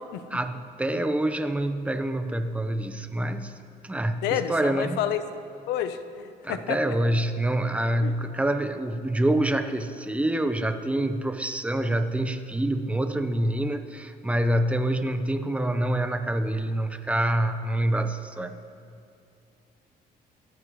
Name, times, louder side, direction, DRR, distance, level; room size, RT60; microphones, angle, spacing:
voice 1, 0.3-3.6 3.8-5.0 6.4-18.6, right 1 dB, 5° right, 8 dB, 1.0 m, -26 dB
voice 2, 4.2-5.2 5.7-6.8 8.0-8.1, left 10 dB, 90° left, 10 dB, 1.0 m, -29 dB
28.5 x 14.5 x 3.2 m, 2.6 s
cardioid pair, 110°, 17 cm